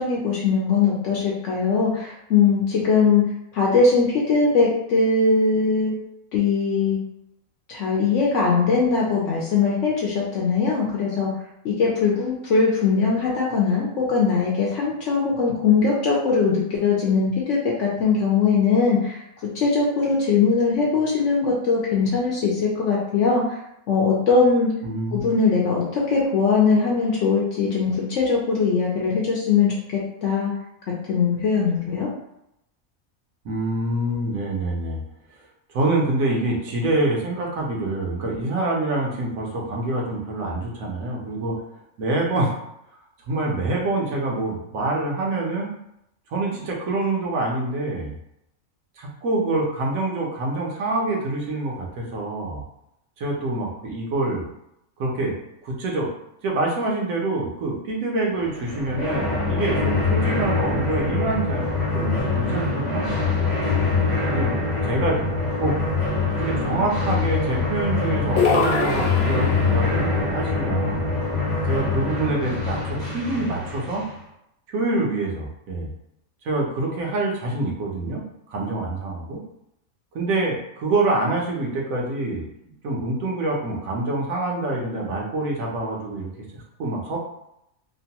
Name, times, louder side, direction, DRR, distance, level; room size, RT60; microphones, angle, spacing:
voice 1, 0.0-3.2 3.5-5.9 6.3-7.0 7.7-11.3 11.6-19.2 19.5-23.6 23.9-24.7 25.1-30.5 31.1-32.1, left 4 dB, 70° left, -3 dB, 0.9 m, -21 dB
voice 2, 24.8-25.3 33.4-35.0 35.7-41.6 42.0-42.5 43.3-45.7 46.3-48.1 49.0-52.6 53.2-54.4 55.0-55.3 55.6-56.1 56.4-63.6 64.3-65.2 65.6-65.8 66.3-71.1 71.7-74.1 74.7-75.9 76.4-79.4 80.1-82.4 82.8-87.2, right 2 dB, 80° right, -2 dB, 1.1 m, -26 dB
sound 1, 58.4-74.2, left 3 dB, 40° left, 0.5 m, -24 dB
sound 2, 68.4-69.9, left 5 dB, 85° left, 1.0 m, -23 dB
3.0 x 2.1 x 2.8 m, 0.80 s
omnidirectional pair, 1.4 m